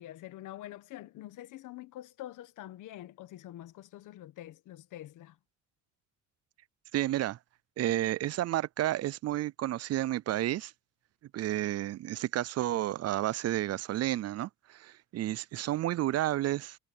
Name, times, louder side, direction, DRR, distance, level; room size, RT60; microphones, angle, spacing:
voice 1, 0.0-5.4, left 14 dB, 85° left, 1.4 m, -46 dB
voice 2, 6.9-7.4 7.8-10.7 11.3-16.8, right 14 dB, 55° right, 0.4 m, -31 dB
cardioid pair, 90°, 30 cm